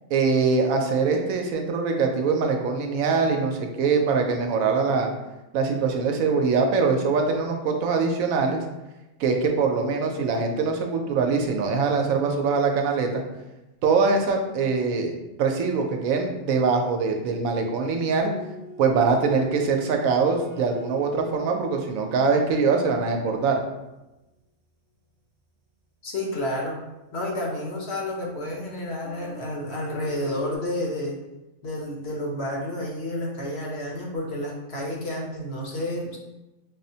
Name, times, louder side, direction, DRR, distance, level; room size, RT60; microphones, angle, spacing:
voice 1, 0.1-5.1 5.5-8.6 9.2-13.2 13.8-15.1 15.4-18.3 18.8-23.6, right 4 dB, 85° right, 3 dB, 1.0 m, -23 dB
sound 1, 17.1-23.9 27.6-27.7 28.8-30.6, left 2 dB, 35° right, 0.8 m, -43 dB
voice 2, 26.0-26.8 27.1-31.2 31.6-36.2, left 1 dB, 60° left, -1 dB, 1.0 m, -30 dB
5.4 x 2.0 x 2.7 m, 1.0 s
omnidirectional pair, 1.4 m